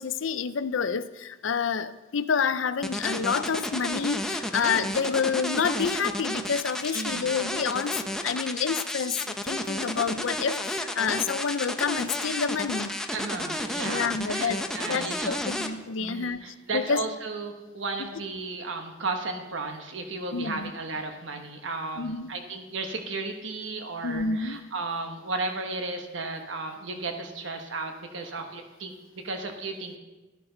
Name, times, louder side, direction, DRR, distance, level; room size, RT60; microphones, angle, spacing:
voice 1, 0.0-12.9 13.8-17.0 18.0-18.1 20.3-20.7 22.0-22.3 24.0-24.6, left 6 dB, 80° left, 13 dB, 0.5 m, -28 dB
sound 1, 2.8-15.7, left 1 dB, 5° left, 0.7 m, -31 dB
voice 2, 6.9-7.4 13.1-15.7 16.0-30.0, right 3 dB, 75° right, 5 dB, 1.0 m, -34 dB
12.5 x 11.5 x 3.9 m, 1.2 s
head